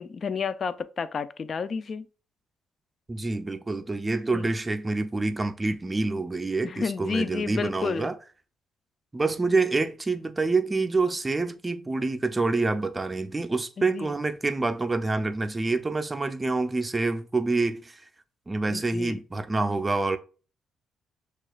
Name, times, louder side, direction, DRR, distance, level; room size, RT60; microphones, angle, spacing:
voice 1, 0.0-2.1 4.3-4.4 6.6-8.1 13.8-14.1 18.7-19.2, left 5 dB, 45° left, 0.3 m, -31 dB
voice 2, 3.1-8.2 9.1-18.0 18.5-20.2, right 3 dB, 20° right, 0.5 m, -27 dB
6.2 x 2.4 x 2.3 m
cardioid pair, 90°, 0 cm